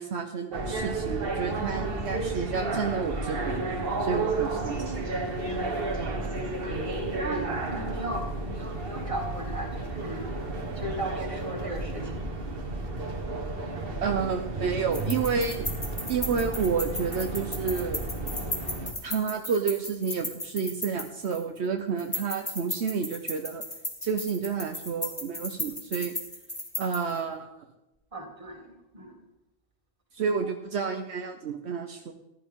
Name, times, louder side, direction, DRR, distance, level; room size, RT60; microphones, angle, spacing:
voice 1, 0.0-3.7 4.0-5.0 14.0-15.7 16.1-18.0 19.0-23.6 24.0-26.1 26.8-27.5 30.1-32.1, right 6 dB, 70° right, 4 dB, 1.1 m, -30 dB
sound 1, 0.5-18.9, right 2 dB, 55° right, 1.7 m, -32 dB
voice 2, 6.3-10.3 10.8-12.3 28.1-28.7 28.9-29.1, right 1 dB, 30° right, 1 dB, 2.4 m, -37 dB
sound 2, 14.9-21.6 22.0-27.2, left 1 dB, 20° left, 1.8 m, -36 dB
14.5 x 11.5 x 3.7 m, 0.98 s
omnidirectional pair, 1.2 m